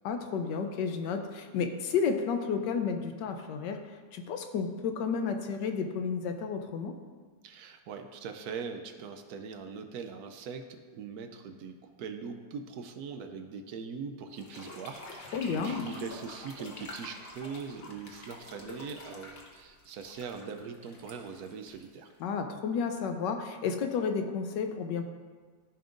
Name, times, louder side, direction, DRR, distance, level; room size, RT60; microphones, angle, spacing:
voice 1, 0.0-3.8 4.1-6.9 15.3-15.8 22.2-25.1, left 5 dB, 75° left, 6 dB, 1.2 m, -31 dB
voice 2, 7.4-22.1, right 5 dB, 70° right, 6 dB, 0.9 m, -41 dB
sound 1, 14.3-22.3, left 2 dB, 35° left, 1.1 m, -47 dB
14.0 x 5.3 x 2.5 m, 1.5 s
omnidirectional pair, 2.1 m